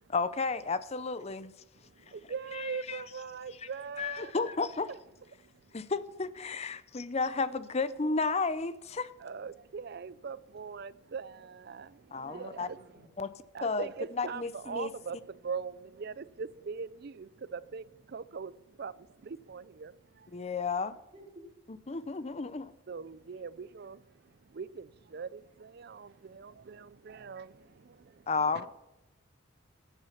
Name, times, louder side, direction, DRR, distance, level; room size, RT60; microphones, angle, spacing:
voice 1, 0.1-1.5 2.5-3.0 4.0-4.9 5.7-9.1 12.1-12.7 13.2-13.3 13.6-13.9 14.2-14.9 20.3-20.9 21.9-22.7 28.3-28.7, left 4 dB, 30° left, 0.5 m, -32 dB
voice 2, 1.8-4.5 4.9-5.0 5.3-5.8 9.2-13.0 13.5-20.4 21.9-22.0 22.9-28.3, right 5 dB, 50° right, 0.4 m, -42 dB
voice 3, 12.1-13.1 21.1-21.4 28.3-28.7, right 1 dB, 30° right, 4.6 m, -53 dB
15.0 x 9.0 x 5.8 m
head